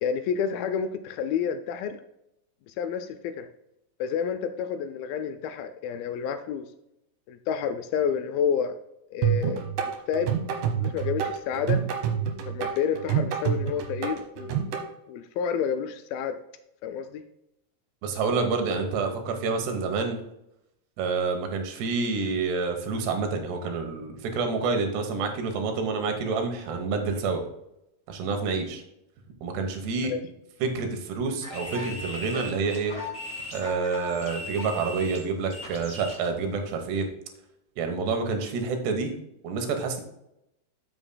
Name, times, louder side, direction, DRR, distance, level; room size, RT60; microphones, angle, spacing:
voice 1, 0.0-2.0 2.7-3.5 4.0-6.7 7.3-8.7 9.1-10.3 10.8-11.8 12.5-14.6 15.1-16.4 16.8-17.2 30.0-30.2, left 7 dB, 85° left, 8 dB, 2.1 m, -29 dB
sound 1, 9.2-14.8, right 8 dB, 70° right, 2.3 m, -27 dB
voice 2, 18.0-20.2 21.0-27.4 28.1-28.8 29.4-30.1 30.6-33.0 33.5-37.1 37.8-39.1 39.4-40.0, right 4 dB, 85° right, 5 dB, 3.2 m, -28 dB
sound 2, 31.4-36.3, left 1 dB, 20° left, 2.2 m, -38 dB
12.5 x 6.9 x 2.2 m, 0.84 s
omnidirectional pair, 4.7 m